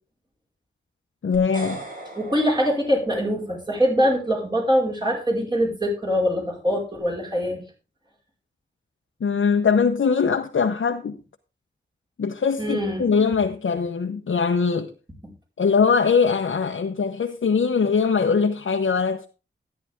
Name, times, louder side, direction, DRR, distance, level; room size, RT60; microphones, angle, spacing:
voice 1, 1.2-1.8 9.2-11.2 12.2-14.9 15.6-19.3, left 5 dB, 85° left, 0.9 m, -21 dB
sound 1, 1.3-3.6, right 2 dB, 45° right, 5.2 m, -39 dB
voice 2, 2.2-7.6 12.6-13.0, equal, 20° right, 5.1 m, -23 dB
13.5 x 9.9 x 3.6 m
wide cardioid pair, 90°, 20 cm